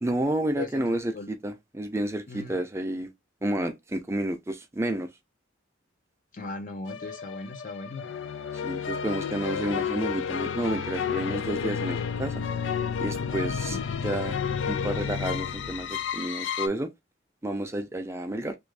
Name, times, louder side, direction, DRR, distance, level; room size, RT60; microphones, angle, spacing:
voice 1, 0.0-3.1 3.4-5.1 8.6-12.4 13.0-14.4 14.7-16.9 17.4-18.5, right 1 dB, 15° right, 0.5 m, -30 dB
voice 2, 0.5-1.3 2.3-2.6 6.3-8.1 13.7-13.8, left 3 dB, 45° left, 0.7 m, -38 dB
sound 1, 6.9-16.7, left 7 dB, 85° left, 0.4 m, -31 dB
3.1 x 2.6 x 3.2 m
head